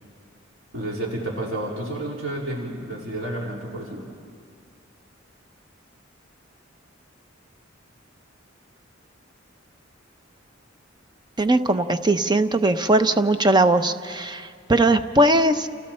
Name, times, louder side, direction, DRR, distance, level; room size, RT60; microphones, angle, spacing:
voice 1, 0.7-4.0, right 1 dB, 85° right, -3 dB, 3.9 m, -30 dB
voice 2, 11.4-15.7, right 2 dB, 20° right, 9 dB, 0.8 m, -19 dB
29.5 x 29.0 x 4.4 m, 2.2 s
head